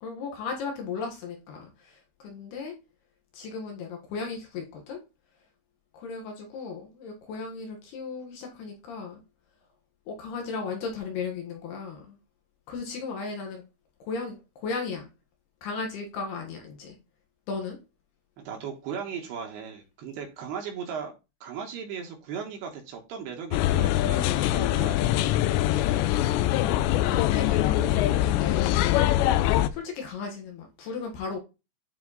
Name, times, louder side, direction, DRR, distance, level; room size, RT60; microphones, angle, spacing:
voice 1, 0.0-2.7 3.3-5.0 5.9-9.2 10.1-12.2 12.7-13.6 14.1-15.1 15.6-17.0 17.5-17.8 26.4-26.5 27.0-29.0 29.7-31.4, left 4 dB, 65° left, 3.1 m, -35 dB
voice 2, 18.4-21.1 21.4-25.0, right 7 dB, 65° right, 3.0 m, -37 dB
sound 1, 23.5-29.7, left 13 dB, 90° left, 2.5 m, -23 dB
9.9 x 4.3 x 4.0 m
omnidirectional pair, 5.7 m